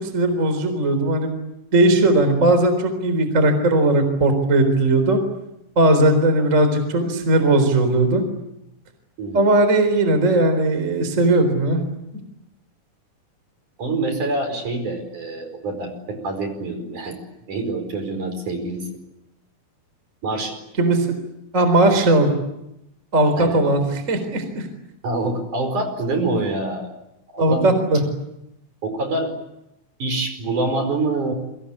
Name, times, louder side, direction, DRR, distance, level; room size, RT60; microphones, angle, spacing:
voice 1, 0.0-1.3 1.7-5.2 5.8-8.2 9.3-11.8 20.8-21.1 21.5-22.3 23.1-24.7 27.4-28.0, right 2 dB, 20° right, 8 dB, 3.8 m, -18 dB
voice 2, 13.8-17.2 17.5-18.9 20.2-20.6 23.4-23.6 25.0-26.9 27.3-27.7 28.8-29.3 30.0-31.3, right 2 dB, 45° right, 7 dB, 6.0 m, -26 dB
29.0 x 24.0 x 8.5 m, 0.86 s
omnidirectional pair, 5.0 m